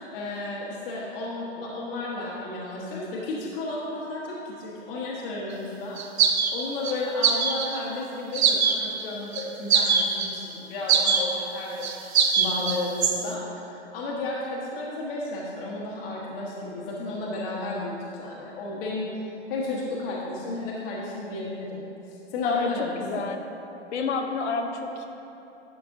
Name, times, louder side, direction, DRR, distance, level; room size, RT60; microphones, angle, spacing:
voice 1, 0.1-19.1 19.5-21.9 22.3-23.0, left 2 dB, 55° left, -5 dB, 1.4 m, -33 dB
Birdsong - Grand Pre - Wolfville NS, 6.0-6.9 7.2-7.8 8.3-9.0 9.3-9.4 9.7-10.3 10.9-11.2 11.8-13.2, right 6 dB, 65° right, 0.9 m, -22 dB
voice 2, 22.4-23.4 23.9-25.1, left 4 dB, 80° left, 5 dB, 0.9 m, -28 dB
12.0 x 5.3 x 2.7 m, 3.0 s
hypercardioid pair, 135°, 34 cm